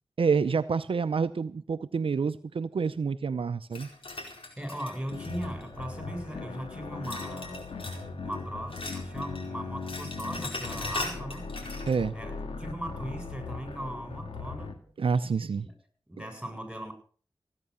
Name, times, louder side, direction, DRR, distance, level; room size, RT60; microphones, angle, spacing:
voice 1, 0.2-3.9 11.9-12.1 15.0-15.7 16.2-16.3, right 5 dB, 75° right, 0.7 m, -28 dB
sound 1, 3.7-5.8 7.0-8.1 8.3-9.5 9.7-12.0, left 2 dB, 75° left, 4.5 m, -40 dB
voice 2, 4.6-7.7 8.2-11.5 12.1-14.8 16.1-16.9, right 1 dB, 10° right, 7.6 m, -38 dB
sound 2, 5.1-14.7, left 4 dB, 90° left, 2.0 m, -39 dB
16.5 x 9.7 x 6.9 m
cardioid pair, 45°, 9 cm